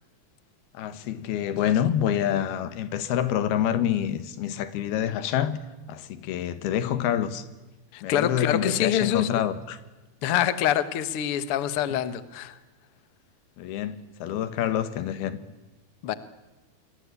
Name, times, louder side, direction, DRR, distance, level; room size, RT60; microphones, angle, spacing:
voice 1, 0.7-5.6 5.9-7.5 8.0-9.8 13.6-15.4, left 10 dB, 80° left, 3.3 m, -27 dB
voice 2, 7.9-9.4 10.2-12.6 16.0-16.1, left 10 dB, 60° left, 1.4 m, -25 dB
28.0 x 22.0 x 8.4 m
omnidirectional pair, 4.4 m